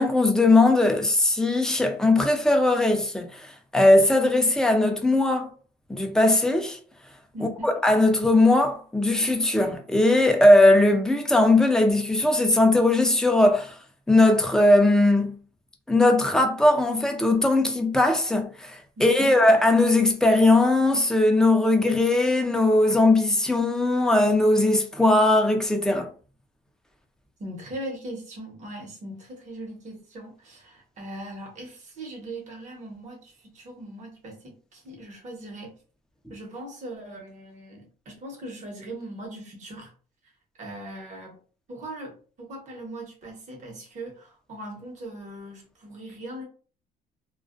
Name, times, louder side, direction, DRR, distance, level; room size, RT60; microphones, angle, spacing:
voice 1, 0.0-5.5 5.9-6.8 7.6-13.7 14.1-15.4 15.9-26.1, left 2 dB, 5° left, 0.5 m, -19 dB
voice 2, 7.3-7.7 19.0-19.3 27.4-35.8 36.3-39.9 40.6-41.4 41.7-46.4, right 1 dB, 45° right, 1.1 m, -40 dB
2.4 x 2.1 x 2.5 m
cardioid pair, 110°, 17 cm